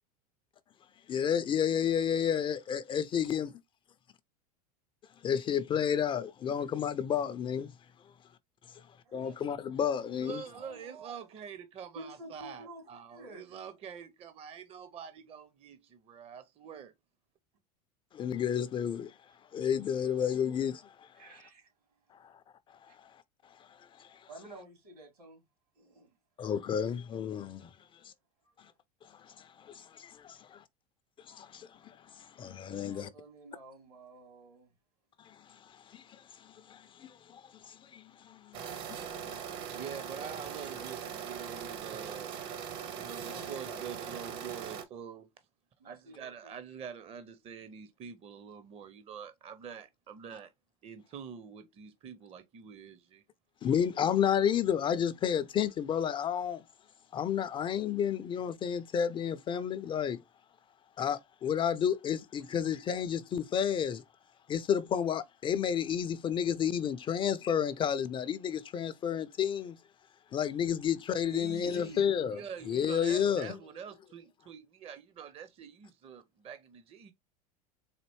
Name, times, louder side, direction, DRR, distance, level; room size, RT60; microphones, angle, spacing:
voice 1, 1.1-3.5 5.2-7.7 9.1-10.4 18.1-19.1 19.5-21.1 24.0-24.2 26.4-27.7 29.2-30.6 31.3-33.1 35.3-35.4 35.7-39.4 53.6-56.6 57.1-60.2 61.0-64.0 64.5-69.8 70.3-72.4 72.7-73.6, left 8 dB, 25° left, 0.3 m, -31 dB
voice 2, 8.7-9.3 10.2-11.3 11.9-13.6 21.1-21.7 24.3-25.4 25.7-26.1 28.0-28.1 28.4-28.7 32.7-34.7 43.2-44.4 45.8-46.5 62.6-62.7 71.3-72.1, right 2 dB, 80° right, 2.7 m, -50 dB
voice 3, 10.2-16.9 39.7-42.3 42.9-45.3 45.8-50.5 50.8-53.2 72.3-77.1, right 7 dB, 30° right, 0.5 m, -46 dB
sound 1, 38.5-44.8, right 8 dB, 55° right, 0.9 m, -41 dB
4.2 x 2.6 x 3.0 m
hypercardioid pair, 85°, 19 cm